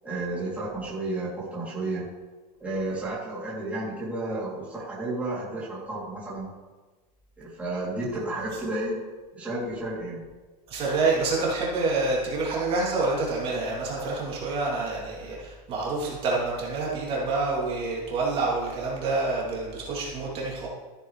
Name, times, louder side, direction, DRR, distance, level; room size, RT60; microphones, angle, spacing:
voice 1, 0.0-2.1 2.6-6.5 7.4-9.1 9.3-10.2, right 2 dB, 5° right, -9 dB, 3.1 m, -32 dB
voice 2, 10.7-20.7, right 3 dB, 30° right, -5 dB, 3.2 m, -27 dB
14.0 x 10.0 x 3.4 m, 1.3 s
supercardioid pair, 160°, 21 cm